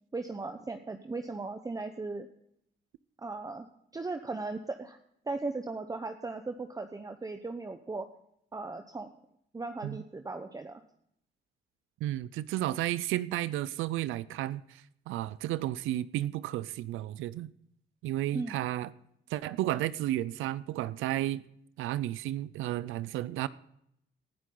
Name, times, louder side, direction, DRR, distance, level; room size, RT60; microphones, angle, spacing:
voice 1, 0.1-2.3 3.2-3.7 3.9-5.0 5.3-8.1 8.5-9.1 9.5-10.8 18.3-18.6, right 3 dB, 15° right, 7 dB, 0.9 m, -37 dB
voice 2, 12.0-17.5 18.0-18.9 19.3-21.4 21.8-23.5, right 14 dB, 90° right, 18 dB, 0.5 m, -32 dB
19.0 x 11.0 x 3.9 m, 0.74 s
cardioid pair, 90°, 20 cm